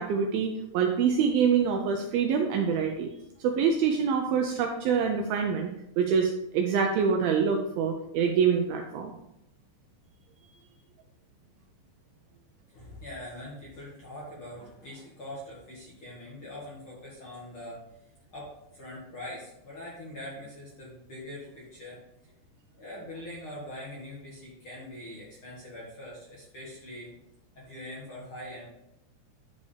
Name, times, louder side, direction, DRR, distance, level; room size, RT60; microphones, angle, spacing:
voice 1, 0.0-3.1 3.4-5.7 6.0-9.1, right 6 dB, 80° right, 3 dB, 2.2 m, -25 dB
voice 2, 12.7-17.8 18.3-22.3 22.7-27.1 27.5-28.7, left 1 dB, 45° left, -7 dB, 1.9 m, -43 dB
10.5 x 5.3 x 3.4 m, 0.84 s
omnidirectional pair, 4.9 m